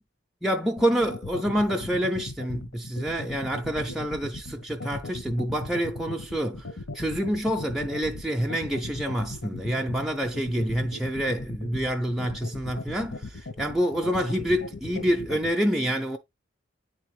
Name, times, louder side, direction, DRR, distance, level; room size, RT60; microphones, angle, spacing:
voice 1, 0.4-6.7 6.9-16.2, equal, ahead, 0.4 m, -27 dB
sound 1, 0.8-15.5, left 2 dB, 90° left, 1.1 m, -37 dB
9.3 x 3.5 x 3.1 m
head